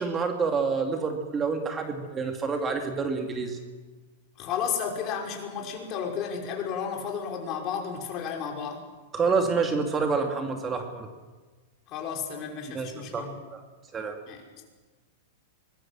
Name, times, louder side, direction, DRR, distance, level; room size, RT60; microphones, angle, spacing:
voice 1, 0.0-3.6 9.1-11.1 12.7-13.6 13.9-14.2, right 4 dB, 20° right, 4 dB, 2.6 m, -28 dB
voice 2, 4.4-8.8 11.9-13.3 14.3-14.4, left 7 dB, 40° left, 1 dB, 5.6 m, -32 dB
25.0 x 20.5 x 7.6 m, 1.3 s
hypercardioid pair, 135°, 0 cm